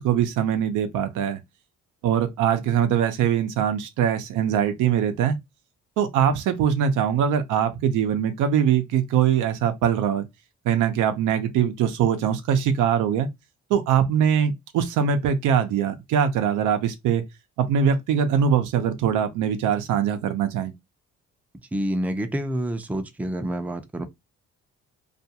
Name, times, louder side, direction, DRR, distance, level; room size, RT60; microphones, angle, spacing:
voice 1, 0.0-1.4 2.0-5.3 6.0-10.2 10.7-13.3 13.7-17.2 17.6-20.7, right 8 dB, 85° right, 0.5 m, -22 dB
voice 2, 21.7-24.1, right 1 dB, 5° right, 0.4 m, -28 dB
2.4 x 2.2 x 2.8 m
cardioid pair, 90°, 30 cm